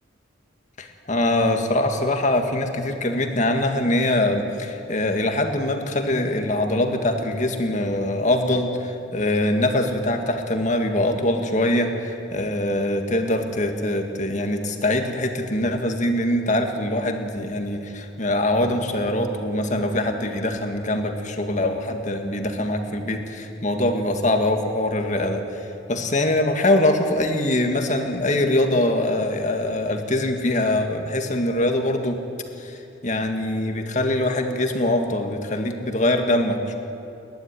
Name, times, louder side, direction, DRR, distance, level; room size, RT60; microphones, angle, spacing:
voice 1, 0.8-32.2 32.6-32.8 33.0-36.8, left 1 dB, 40° left, 4 dB, 2.0 m, -23 dB
30.0 x 11.5 x 9.8 m, 2.8 s
head